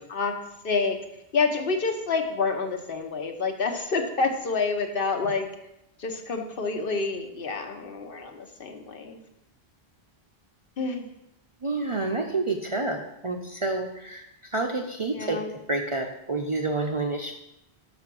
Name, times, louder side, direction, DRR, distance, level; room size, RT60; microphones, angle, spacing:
voice 1, 0.6-1.0 1.3-5.5 6.0-9.2 10.8-11.0 15.1-15.5, left 4 dB, 60° left, 4 dB, 1.0 m, -28 dB
voice 2, 11.6-15.4 15.7-17.3, right 2 dB, 40° right, 2 dB, 0.5 m, -29 dB
6.1 x 5.7 x 6.0 m, 0.85 s
omnidirectional pair, 1.1 m